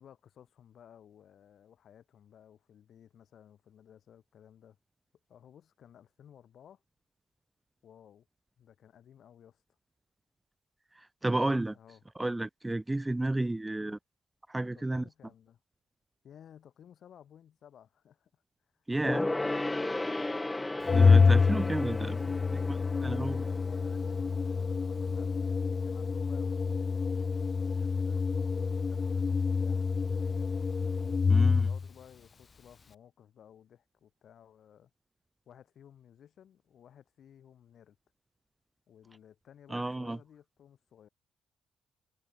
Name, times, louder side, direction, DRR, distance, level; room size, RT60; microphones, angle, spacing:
voice 1, 0.0-4.8 5.3-6.8 7.8-8.3 8.6-9.6 11.7-12.0 13.8-14.0 14.7-15.6 16.2-18.4 20.1-20.5 21.7-31.0 31.2-34.9 35.5-38.0 38.9-41.1, left 9 dB, 65° left, 3.8 m, -57 dB
voice 2, 11.0-11.8 12.2-14.0 14.5-15.0 18.9-19.3 20.9-22.2 22.7-22.8 23.0-23.4 31.3-31.7 39.7-40.2, right 2 dB, 15° right, 0.6 m, -32 dB
Gong, 19.0-24.9 25.2-25.3, left 2 dB, 15° left, 0.9 m, -35 dB
Organ, 20.9-31.9, left 5 dB, 35° left, 0.5 m, -27 dB
cardioid pair, 90°, 0 cm